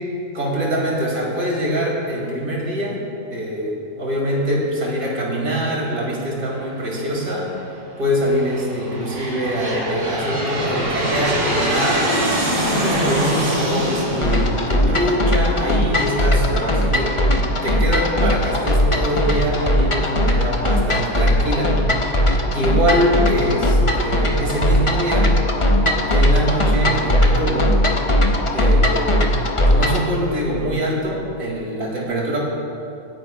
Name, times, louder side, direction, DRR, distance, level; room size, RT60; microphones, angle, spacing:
voice 1, 0.3-3.0 3.3-7.5 8.0-12.3 12.8-21.8 22.5-25.3 26.0-27.8 28.5-29.2 29.7-32.4, equal, 65° right, -3 dB, 3.0 m, -23 dB
Aircraft, 6.8-7.3 8.1-15.6, right 1 dB, 90° right, 3.0 m, -24 dB
sound 1, 14.2-30.1, left 1 dB, 30° left, 0.6 m, -19 dB
24.5 x 9.9 x 2.4 m, 2.7 s
omnidirectional pair, 1.6 m